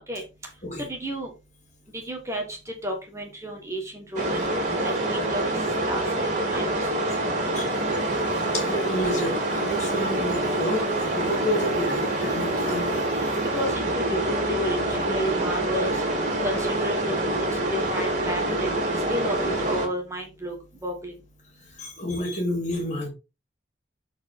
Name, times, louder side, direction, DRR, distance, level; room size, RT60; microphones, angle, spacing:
voice 1, 0.8-1.3 2.0-2.4 2.8-4.4 4.8-5.4 5.8-7.1 13.5-16.0 16.4-20.5 20.8-21.1, equal, 15° right, 1.4 m, -32 dB
sound 1, 4.2-19.9, right 1 dB, 40° right, 2.8 m, -26 dB
voice 2, 7.6-13.4 21.8-23.1, equal, 40° left, 2.7 m, -30 dB
7.3 x 4.5 x 4.4 m
head